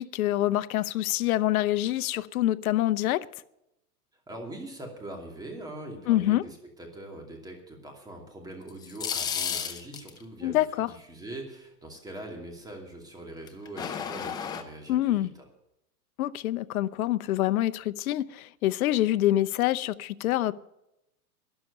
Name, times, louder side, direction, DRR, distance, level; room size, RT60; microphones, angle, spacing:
voice 1, 0.0-3.2 6.1-6.4 10.4-10.9 14.9-15.3 16.2-20.5, left 14 dB, 65° left, 14 dB, 0.7 m, -26 dB
voice 2, 4.3-15.4, right 1 dB, 10° right, 2 dB, 2.6 m, -42 dB
sound 1, 8.7-10.2 13.5-14.6, left 8 dB, 10° left, 0.5 m, -32 dB
13.0 x 11.0 x 6.7 m, 0.85 s
supercardioid pair, 150°, 46 cm